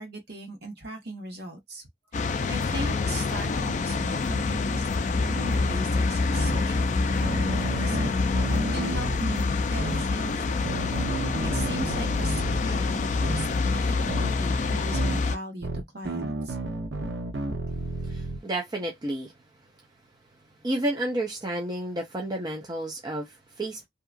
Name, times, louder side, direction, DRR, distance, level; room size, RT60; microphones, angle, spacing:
voice 1, 0.0-1.8 2.1-10.7 11.3-16.6, right 1 dB, 60° right, 1.2 m, -38 dB
sound 1, 2.1-15.4, left 4 dB, 40° left, 0.3 m, -26 dB
sound 2, 5.5-5.8 6.4-6.6 7.2-9.2 9.8-10.0 10.6-12.6 13.2-13.5 14.1-14.3 14.9-15.2 15.6-18.4, right 2 dB, 80° right, 0.8 m, -32 dB
voice 2, 18.0-19.3 20.6-23.9, right 1 dB, 20° right, 0.6 m, -31 dB
2.8 x 2.3 x 2.4 m
head